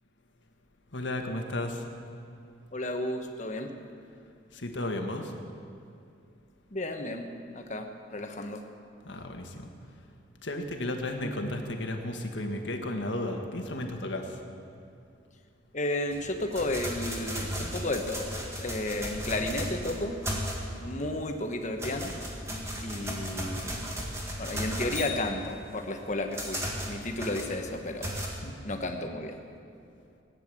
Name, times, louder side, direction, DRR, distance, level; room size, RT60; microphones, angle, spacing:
voice 1, 0.9-1.8 4.5-5.3 9.0-9.7 10.4-14.4 28.3-28.5, left 1 dB, 70° left, 4 dB, 1.6 m, -34 dB
voice 2, 2.7-3.7 6.7-7.8 8.1-8.6 15.7-18.3 18.6-20.2 20.8-22.1 22.8-23.7 24.4-26.6 26.9-28.1 28.6-29.3, left 1 dB, 40° left, 4 dB, 1.2 m, -32 dB
sound 1, 16.1-20.9 21.3-28.3, equal, 15° right, 1.8 m, -35 dB
17.5 x 9.7 x 7.7 m, 2.5 s
head